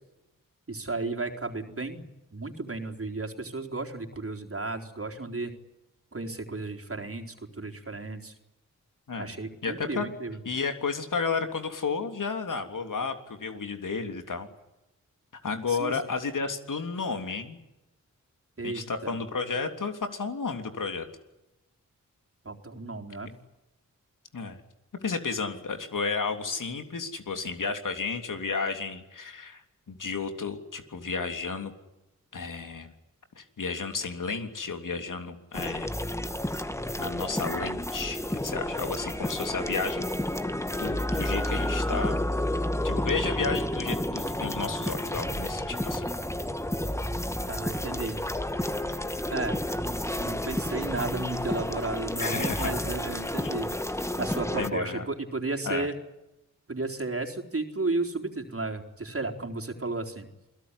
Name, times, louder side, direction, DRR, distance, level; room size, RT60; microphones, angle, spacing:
voice 1, 0.7-2.1 2.3-5.5 6.1-8.3 9.2-10.4 15.7-16.0 18.6-19.2 22.4-23.3 47.5-48.2 49.3-49.6 50.2-53.7 54.2-55.9 56.7-60.3, right 3 dB, 40° right, 3 dB, 4.1 m, -33 dB
voice 2, 9.6-10.1 10.4-14.5 15.4-17.6 18.6-21.0 24.3-24.6 25.0-31.7 32.3-32.9 33.4-35.9 37.0-40.1 40.8-42.2 42.8-46.1 52.2-52.7 54.6-55.1 55.6-55.9, left 4 dB, 65° left, 6 dB, 3.4 m, -32 dB
sound 1, 35.5-54.7, left 1 dB, 10° left, 1.8 m, -31 dB
28.0 x 18.0 x 10.0 m, 0.97 s
cardioid pair, 45°, 34 cm